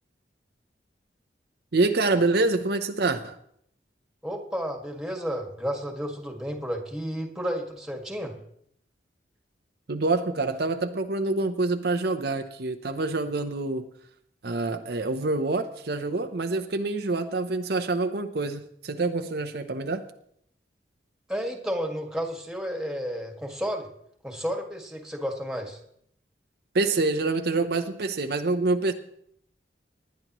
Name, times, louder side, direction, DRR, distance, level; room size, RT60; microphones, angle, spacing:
voice 1, 1.7-3.4 9.9-13.8 14.4-20.0 26.7-28.9, right 3 dB, 65° right, 7 dB, 0.8 m, -26 dB
voice 2, 4.2-8.3 21.3-23.9 24.2-25.8, equal, 5° right, 2 dB, 1.9 m, -32 dB
19.5 x 10.5 x 3.1 m, 0.69 s
head